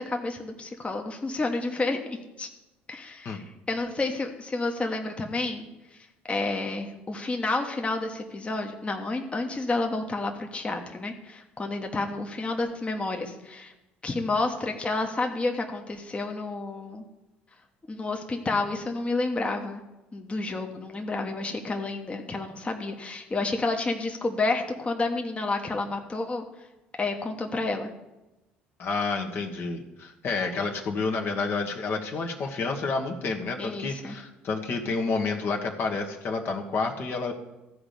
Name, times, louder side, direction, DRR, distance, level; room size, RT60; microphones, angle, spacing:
voice 1, 0.0-2.5 2.9-13.7 14.0-17.0 17.9-19.8 20.1-26.4 27.0-27.9 33.6-34.2, left 3 dB, 20° left, 3 dB, 1.2 m, -30 dB
voice 2, 28.8-37.3, left 4 dB, 45° left, 2 dB, 1.3 m, -29 dB
14.5 x 5.0 x 6.8 m, 1.0 s
figure-of-eight pair, 55°, 6 cm